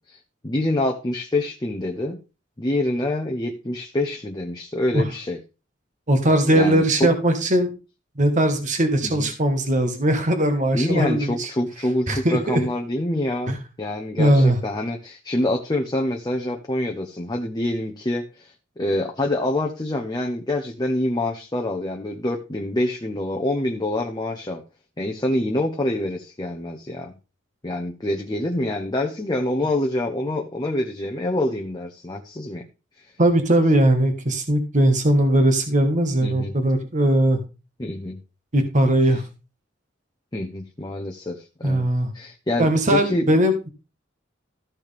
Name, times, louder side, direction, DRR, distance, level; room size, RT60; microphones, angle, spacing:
voice 1, 0.4-2.2 2.6-5.4 6.5-7.1 9.0-9.3 10.7-24.6 25.0-27.2 27.6-32.6 33.0-33.1 36.2-36.6 37.8-38.2 40.3-41.9 42.1-43.3, left 1 dB, 20° left, 1 dB, 0.9 m, -26 dB
voice 2, 6.1-7.7 8.2-11.5 12.1-12.6 13.5-13.6 14.2-14.6 33.2-37.4 38.5-39.2 41.6-42.1 42.6-43.7, right 1 dB, 40° right, 6 dB, 1.5 m, -19 dB
13.5 x 6.3 x 3.5 m, 0.30 s
head